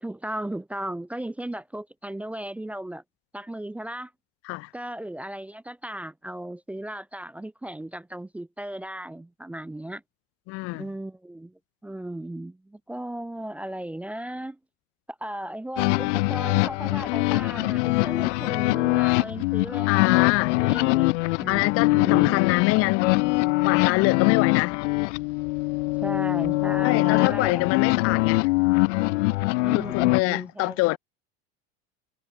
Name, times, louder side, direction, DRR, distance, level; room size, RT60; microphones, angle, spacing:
voice 1, 0.0-3.0 3.3-4.1 4.7-10.0 10.7-14.6 15.1-19.9 20.6-21.1 21.4-22.5 26.0-27.7 29.6-31.0, right 1 dB, 5° right, 0.7 m, -36 dB
voice 2, 10.5-10.8 19.9-20.6 21.5-24.8 26.8-28.5 29.7-31.0, left 24 dB, 40° left, 0.7 m, -25 dB
sound 1, 15.8-30.2, left 23 dB, 90° left, 0.9 m, -23 dB
cardioid pair, 165°, 35 cm